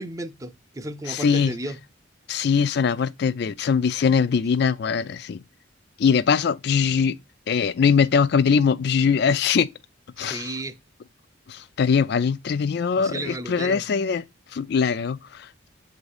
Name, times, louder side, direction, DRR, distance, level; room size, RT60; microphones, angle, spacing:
voice 1, 0.0-1.8 10.2-10.7 13.0-13.8, right 1 dB, 15° right, 0.4 m, -33 dB
voice 2, 1.1-1.5 2.3-5.4 6.0-7.2 7.5-9.7 10.2-10.5 11.5-14.2 14.5-15.5, left 6 dB, 55° left, 0.3 m, -22 dB
7.9 x 2.7 x 4.8 m
head